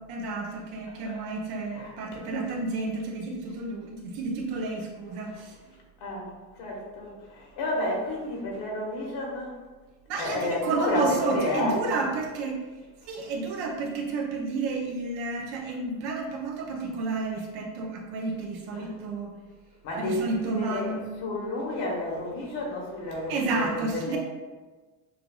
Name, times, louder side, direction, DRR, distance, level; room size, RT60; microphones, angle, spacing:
voice 1, 0.0-5.5 10.1-12.6 13.1-19.3 20.0-21.0 23.3-24.2, right 3 dB, 85° right, 0 dB, 0.9 m, -31 dB
voice 2, 6.0-9.6 10.1-11.8 13.0-13.1 18.7-18.9 19.8-20.9 21.2-24.2, left 1 dB, 85° left, -2 dB, 1.5 m, -31 dB
6.6 x 2.6 x 2.3 m, 1.3 s
cardioid pair, 140°, 38 cm